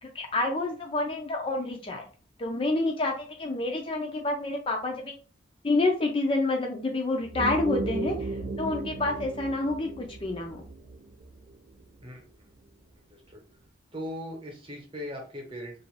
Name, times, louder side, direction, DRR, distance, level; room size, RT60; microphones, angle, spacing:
voice 1, 0.0-2.0 2.4-5.1 5.6-10.6, left 2 dB, 30° left, 2 dB, 0.4 m, -28 dB
sound 1, 7.2-12.0, right 2 dB, 80° right, 0.7 m, -35 dB
voice 2, 13.1-13.4 13.9-15.8, left 1 dB, 30° right, -1 dB, 0.9 m, -39 dB
2.4 x 2.2 x 3.1 m, 0.37 s
head